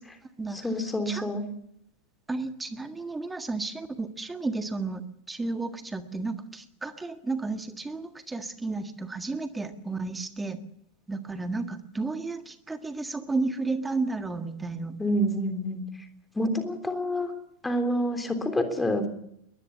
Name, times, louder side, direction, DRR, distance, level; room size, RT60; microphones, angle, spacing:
voice 1, 0.5-1.4 15.0-15.8 16.4-17.3 17.6-19.1, equal, 10° left, 6 dB, 3.4 m, -27 dB
voice 2, 2.3-10.6 11.1-15.0, right 3 dB, 10° right, 9 dB, 1.7 m, -32 dB
21.5 x 20.5 x 7.1 m, 0.77 s
figure-of-eight pair, 90°, 0 cm